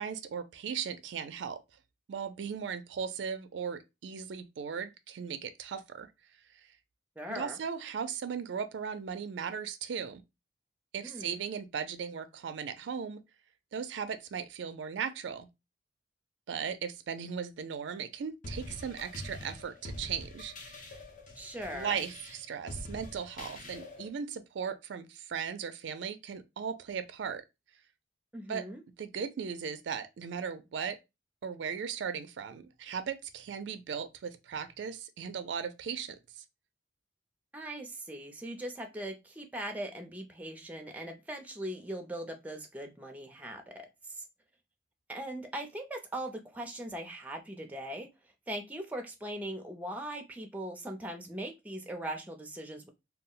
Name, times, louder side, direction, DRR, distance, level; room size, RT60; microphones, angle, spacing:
voice 1, 0.0-1.6 2.1-6.1 6.6-6.7 7.3-10.2 10.9-13.2 13.7-15.5 16.5-20.9 21.7-27.4 28.5-28.7 29.0-31.0 31.4-36.2, right 7 dB, 75° right, 0.4 m, -37 dB
voice 2, 7.2-7.6 11.0-11.4 21.4-22.0 28.3-28.8 37.5-44.2 45.1-48.1 48.5-52.9, right 1 dB, 10° right, 0.4 m, -40 dB
sound 1, 18.4-24.1, left 1 dB, 45° left, 0.7 m, -45 dB
2.3 x 2.0 x 3.7 m
head